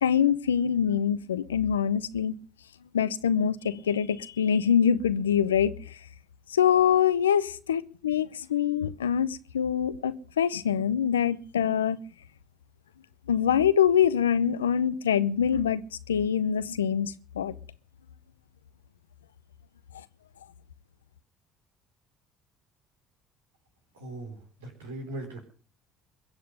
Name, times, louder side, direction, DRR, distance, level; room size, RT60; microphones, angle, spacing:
voice 1, 0.0-2.4 2.9-6.0 6.5-12.0 13.3-17.5, left 8 dB, 90° left, 0.6 m, -25 dB
voice 2, 23.9-25.4, right 1 dB, 85° right, 4.1 m, -39 dB
22.0 x 7.8 x 6.6 m
hypercardioid pair, 60°, 0 cm